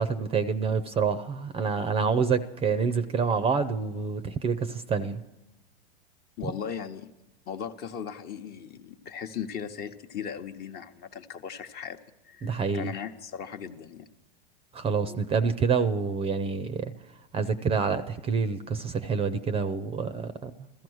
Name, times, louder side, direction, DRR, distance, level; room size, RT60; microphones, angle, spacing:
voice 1, 0.0-5.2 6.4-6.5 12.4-12.9 14.7-16.9 17.3-20.5, right 5 dB, 20° right, 14 dB, 0.6 m, -27 dB
voice 2, 6.4-7.1 7.5-12.0 12.2-14.1 14.8-15.2, left 7 dB, 35° left, 7 dB, 1.0 m, -38 dB
16.0 x 14.0 x 6.3 m, 1.0 s
hypercardioid pair, 115°, 29 cm